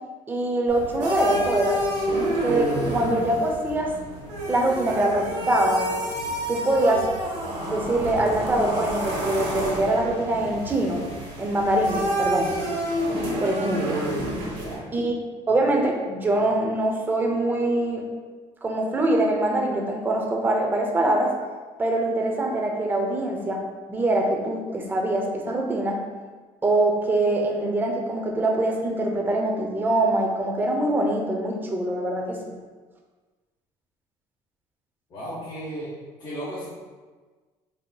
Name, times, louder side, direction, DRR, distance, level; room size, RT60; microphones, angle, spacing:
voice 1, 0.3-1.8 2.4-3.9 4.5-5.8 6.5-7.1 7.7-11.0 11.4-12.6 13.4-14.0 14.9-15.1 15.5-18.0 18.6-21.3 21.8-23.6 23.9-26.0 26.6-32.4, right 1 dB, 15° right, 1 dB, 0.6 m, -23 dB
sound 1, 0.7-14.8, right 1 dB, 90° right, 1.1 m, -29 dB
voice 2, 14.4-14.8 35.1-35.9 36.2-36.7, equal, 40° left, -9 dB, 1.3 m, -35 dB
5.2 x 2.8 x 2.3 m, 1.4 s
cardioid pair, 135°, 11 cm